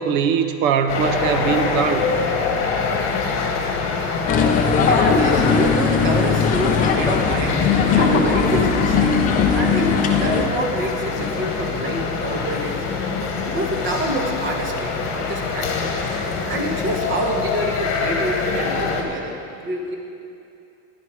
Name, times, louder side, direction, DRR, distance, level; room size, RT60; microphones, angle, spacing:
voice 1, 0.0-2.1, right 7 dB, 70° right, 9 dB, 0.9 m, -21 dB
sound 1, 0.9-19.0, left 4 dB, 40° left, 1.4 m, -25 dB
sound 2, 4.3-10.4, left 5 dB, 20° left, 0.4 m, -19 dB
voice 2, 4.8-9.2 9.4-12.8 13.4-15.9 16.5-19.4 19.6-20.0, right 1 dB, 25° right, 2 dB, 1.2 m, -27 dB
12.5 x 10.5 x 4.8 m, 2.6 s
cardioid pair, 175°, 43 cm